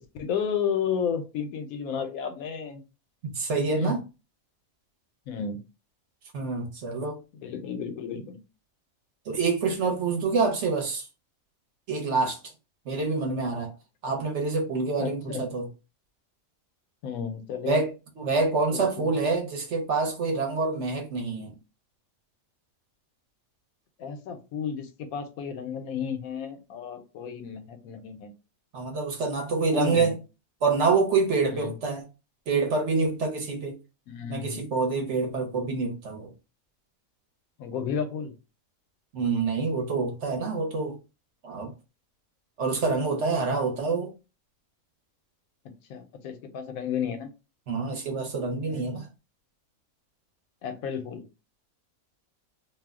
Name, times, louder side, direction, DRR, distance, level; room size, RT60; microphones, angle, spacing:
voice 1, 0.2-2.8 3.8-4.0 5.3-5.6 7.4-8.4 15.0-15.4 17.0-17.8 18.7-19.1 24.0-28.3 29.7-30.2 31.5-31.7 34.1-34.7 37.6-38.3 45.6-47.3 48.7-48.9 50.6-51.3, left 7 dB, 85° left, 1.1 m, -32 dB
voice 2, 3.2-4.0 6.3-7.2 9.3-11.1 11.9-12.4 12.9-13.7 14.0-15.7 17.7-17.9 18.2-21.6 28.7-30.1 30.6-32.0 32.5-33.8 34.3-36.3 39.1-41.0 41.4-41.7 42.6-44.1 47.7-49.1, right 4 dB, 60° right, 1.0 m, -26 dB
2.6 x 2.0 x 3.5 m
omnidirectional pair, 1.5 m